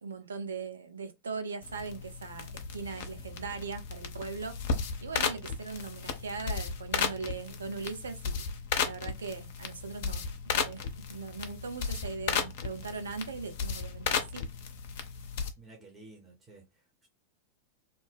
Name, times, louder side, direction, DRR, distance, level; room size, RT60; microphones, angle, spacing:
voice 1, 0.0-4.6 5.0-8.4 8.8-14.5, right 4 dB, 70° right, 0.5 m, -40 dB
sound 1, 1.6-15.5, left 6 dB, 50° left, 0.5 m, -35 dB
voice 2, 15.6-17.1, right 2 dB, 20° right, 0.8 m, -53 dB
2.6 x 2.0 x 3.3 m
figure-of-eight pair, 90°, 0 cm